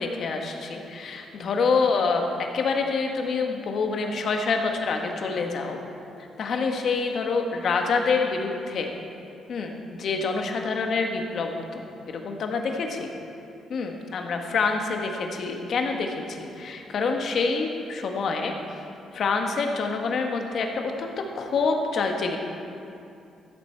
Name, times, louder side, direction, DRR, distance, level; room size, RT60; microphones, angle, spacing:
voice 1, 0.0-5.8 6.4-8.9 9.5-13.1 13.7-18.5 19.1-22.4, left 4 dB, 60° left, 3 dB, 1.2 m, -27 dB
14.5 x 7.5 x 4.5 m, 2.6 s
cardioid pair, 90°, 0 cm